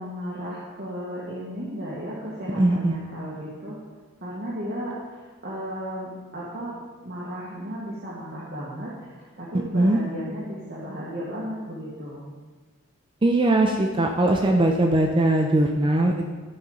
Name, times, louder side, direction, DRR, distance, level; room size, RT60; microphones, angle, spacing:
voice 1, 0.0-3.8 4.2-6.7 7.0-12.2, equal, 50° right, -8 dB, 1.6 m, -34 dB
voice 2, 2.5-2.9 9.7-10.0 13.2-16.3, right 1 dB, 25° right, 2 dB, 0.5 m, -20 dB
13.0 x 5.5 x 3.9 m, 1.4 s
head